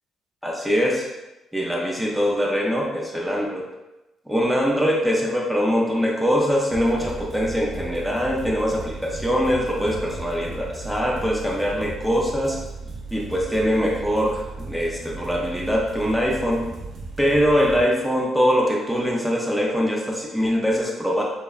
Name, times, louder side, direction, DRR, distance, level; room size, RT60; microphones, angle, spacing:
voice 1, 0.4-1.1 1.5-3.6 4.3-12.6 13.1-16.7 17.2-21.2, equal, ahead, -2 dB, 0.4 m, -22 dB
sound 1, 6.7-17.8, right 3 dB, 65° right, 0.4 m, -36 dB
2.7 x 2.1 x 2.3 m, 1.0 s
cardioid pair, 90°, 0 cm